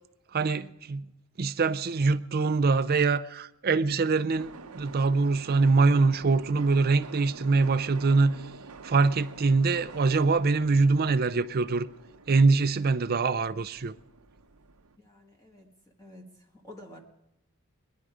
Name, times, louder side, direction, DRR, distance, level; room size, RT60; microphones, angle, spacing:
voice 1, 0.3-1.1 1.4-8.4 8.8-11.9 12.3-13.9, right 3 dB, 45° right, 0.5 m, -24 dB
sound 1, 4.3-15.0, right 4 dB, 80° right, 0.7 m, -47 dB
voice 2, 15.0-15.7 16.0-17.0, left 1 dB, 15° left, 1.6 m, -50 dB
21.5 x 10.5 x 4.9 m
head